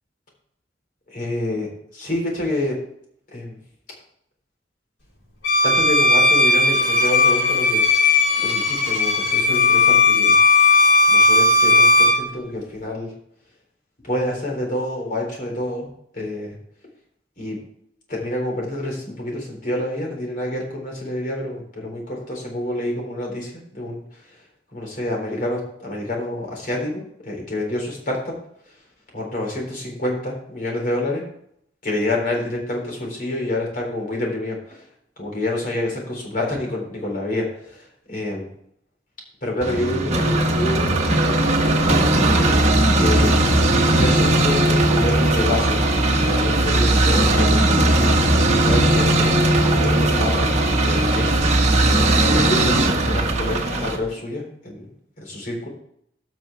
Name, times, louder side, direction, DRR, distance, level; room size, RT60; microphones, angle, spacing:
voice 1, 1.1-1.7 1.9-2.8 3.3-3.6 5.6-7.8 8.4-10.4 11.1-13.1 14.0-15.9 16.1-16.6 17.4-17.6 18.1-24.0 24.7-28.3 29.1-31.2 31.8-34.8 35.2-38.5 39.4-42.4 42.9-43.3 43.9-47.9 48.5-51.5 52.0-54.9 55.2-55.7, left 1 dB, 45° left, 0 dB, 3.9 m, -28 dB
Bowed string instrument, 5.4-12.2, left 3 dB, 90° left, 4.6 m, -16 dB
sound 1, 39.6-54.0, right 1 dB, 35° right, 1.4 m, -18 dB
17.0 x 6.1 x 3.4 m, 0.70 s
head